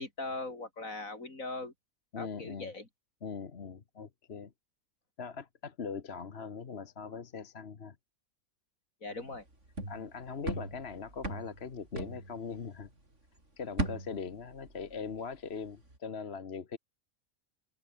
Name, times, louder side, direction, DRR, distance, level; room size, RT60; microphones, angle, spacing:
voice 1, 0.0-1.7 2.2-2.9 9.0-9.5, left 2 dB, 75° left, 4.9 m, -40 dB
voice 2, 2.1-2.7 3.2-4.5 5.2-8.0 9.9-12.9 13.6-16.8, left 5 dB, 50° left, 1.5 m, -41 dB
sound 1, 9.3-13.1 13.4-15.4 15.7-16.0, right 2 dB, 60° right, 6.3 m, -39 dB
omnidirectional pair, 1.4 m